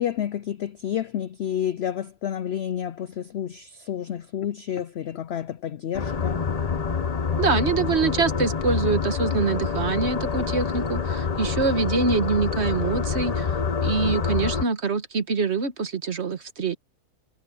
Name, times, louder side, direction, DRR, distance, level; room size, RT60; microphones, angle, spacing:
voice 1, 0.0-6.4, left 10 dB, 75° left, 0.6 m, -30 dB
sound 1, 5.9-14.6, left 5 dB, 30° left, 0.8 m, -26 dB
voice 2, 7.4-13.6 13.8-16.8, right 4 dB, 45° right, 1.5 m, -25 dB
omnidirectional pair, 1.6 m